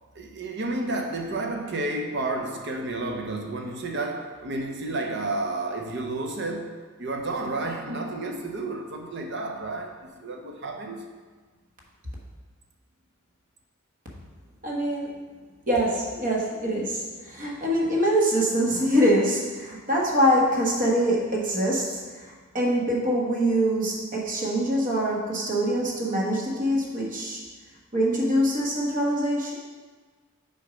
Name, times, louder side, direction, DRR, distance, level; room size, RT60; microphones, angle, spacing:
voice 1, 0.1-11.1, right 2 dB, 55° right, 0.8 m, -31 dB
voice 2, 14.6-15.2 15.7-27.4 27.9-29.5, equal, 40° right, 1.3 m, -24 dB
6.4 x 4.3 x 5.1 m
head